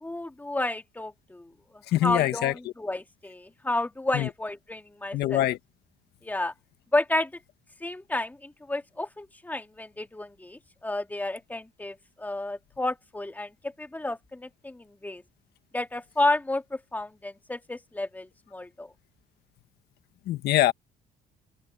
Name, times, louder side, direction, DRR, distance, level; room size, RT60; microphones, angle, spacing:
voice 1, 0.0-5.4 6.2-6.5 6.9-7.3 7.8-15.2 15.7-18.9, left 2 dB, 10° left, 2.1 m, -31 dB
voice 2, 1.9-2.5 4.1-4.3 5.1-5.6 20.3-20.7, left 14 dB, 75° left, 1.6 m, -24 dB
cardioid pair, 110°, 17 cm